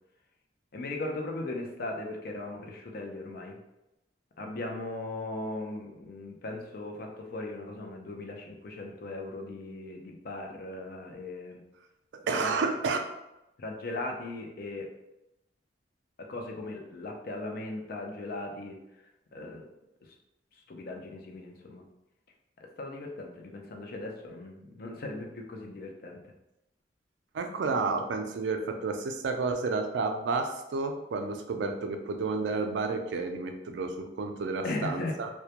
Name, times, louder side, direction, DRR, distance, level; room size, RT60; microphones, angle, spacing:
voice 1, 0.7-3.6 4.4-11.6 12.4-12.5 13.6-14.9 16.2-18.8 19.3-19.6 20.0-20.1 20.6-21.8 22.6-26.2 34.6-35.1, left 2 dB, 55° left, 1 dB, 0.4 m, -38 dB
voice 2, 12.3-13.0 27.3-35.3, right 4 dB, 85° right, 5 dB, 0.3 m, -31 dB
2.2 x 2.1 x 2.8 m, 0.90 s
head